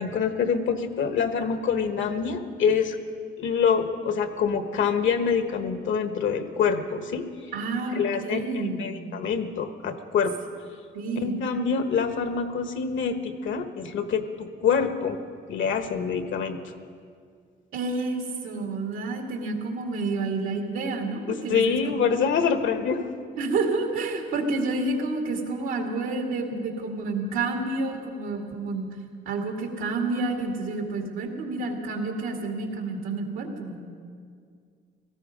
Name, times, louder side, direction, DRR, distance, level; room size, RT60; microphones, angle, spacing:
voice 1, 0.0-3.0 3.4-7.2 7.9-8.4 8.8-10.3 11.2-15.2 15.5-16.6 21.3-23.0, left 6 dB, 75° left, 8 dB, 1.3 m, -25 dB
voice 2, 7.5-8.9 10.9-11.4 17.7-22.0 23.4-28.9 29.2-33.8, right 3 dB, 90° right, 2 dB, 2.3 m, -29 dB
17.5 x 14.5 x 5.1 m, 2.2 s
cardioid pair, 90°, 20 cm